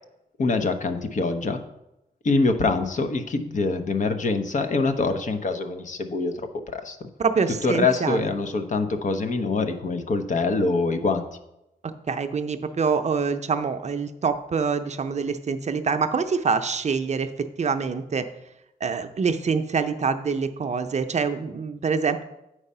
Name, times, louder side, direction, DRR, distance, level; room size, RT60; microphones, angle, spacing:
voice 1, 0.4-1.6 2.2-7.0 7.6-11.2, left 3 dB, 50° left, 7 dB, 0.9 m, -24 dB
voice 2, 7.2-8.3 11.8-18.3 18.8-22.2, right 5 dB, 45° right, 8 dB, 0.6 m, -25 dB
8.7 x 4.8 x 5.5 m, 0.88 s
cardioid pair, 90°, 16 cm